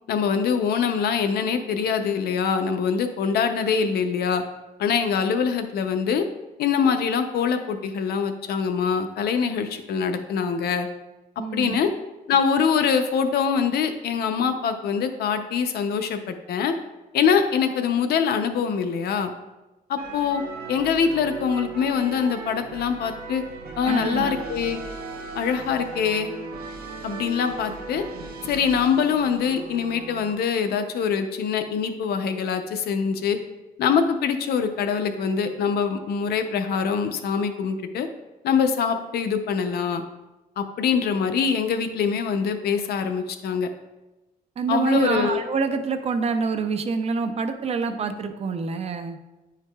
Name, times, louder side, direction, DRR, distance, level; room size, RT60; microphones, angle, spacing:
voice 1, 0.1-4.4 4.8-6.2 6.6-10.9 11.5-11.9 12.3-16.7 17.1-19.3 19.9-20.4 20.7-23.4 23.8-24.8 25.3-26.3 27.0-28.0 28.4-33.4 33.8-38.1 38.4-40.0 40.6-43.7 44.7-45.4, left 6 dB, 75° left, 8 dB, 0.6 m, -24 dB
voice 2, 11.4-11.8 23.9-24.5 44.6-49.2, right 5 dB, 40° right, 8 dB, 0.5 m, -26 dB
sound 1, 20.0-30.3, right 4 dB, 65° right, 0.8 m, -37 dB
9.5 x 4.6 x 2.3 m, 1.1 s
cardioid pair, 135°, 16 cm